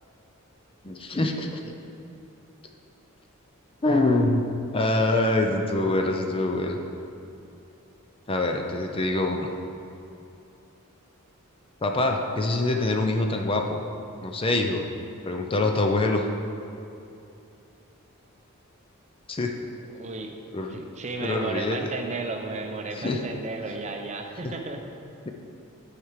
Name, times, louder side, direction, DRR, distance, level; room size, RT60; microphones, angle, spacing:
voice 1, 0.8-1.5 3.8-6.8 8.3-9.5 11.8-13.8 14.2-14.8 15.2-16.3 19.3-19.5 20.5-20.8 21.2-21.9 23.0-23.3 24.4-24.5, left 2 dB, 25° left, 3 dB, 0.5 m, -25 dB
voice 2, 19.9-20.3 20.7-24.8, right 3 dB, 35° right, 4 dB, 0.7 m, -33 dB
9.7 x 5.0 x 4.7 m, 2.8 s
head